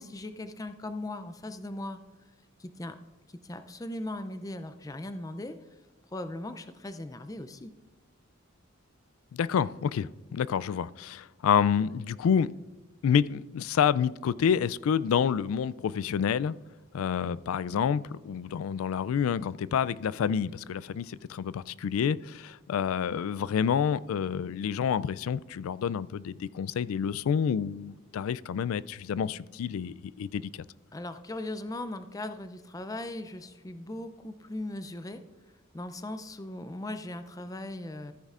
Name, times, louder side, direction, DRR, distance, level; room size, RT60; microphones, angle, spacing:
voice 1, 0.0-2.0 2.6-3.0 3.4-5.6 6.1-7.7 30.9-35.2 35.7-38.1, left 1 dB, 15° left, 0.4 m, -38 dB
voice 2, 9.3-12.5 13.0-16.6 16.9-30.6, left 7 dB, 85° left, 0.3 m, -28 dB
14.0 x 9.6 x 2.5 m
head